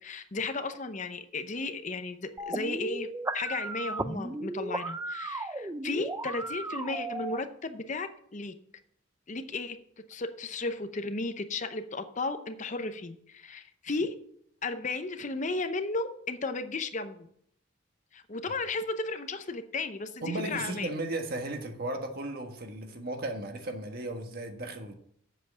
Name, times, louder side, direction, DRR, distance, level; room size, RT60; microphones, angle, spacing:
voice 1, 0.0-8.5 9.3-9.8 10.1-14.1 14.6-17.3 18.1-20.9, left 3 dB, 35° left, 0.7 m, -34 dB
sound 1, 2.4-7.4, right 2 dB, 15° right, 0.4 m, -35 dB
voice 2, 20.2-24.9, right 2 dB, 50° right, 1.5 m, -35 dB
7.7 x 7.6 x 7.3 m
head